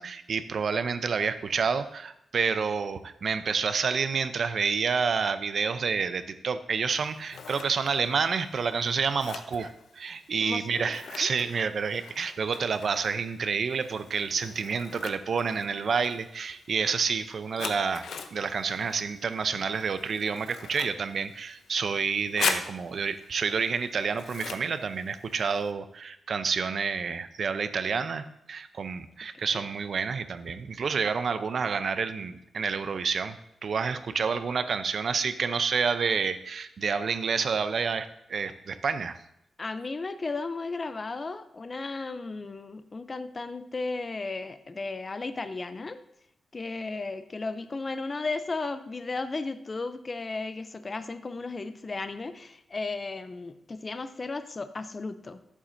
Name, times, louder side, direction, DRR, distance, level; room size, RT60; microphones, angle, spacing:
voice 1, 0.0-18.0 18.3-39.2, right 5 dB, 50° right, 11 dB, 0.5 m, -29 dB
Scissors, 6.9-25.7, left 6 dB, 85° left, 0.7 m, -41 dB
voice 2, 10.4-11.3 39.6-46.0 46.5-55.4, left 3 dB, 30° left, 11 dB, 0.4 m, -35 dB
12.5 x 7.3 x 2.6 m, 0.80 s
wide cardioid pair, 145°, 0 cm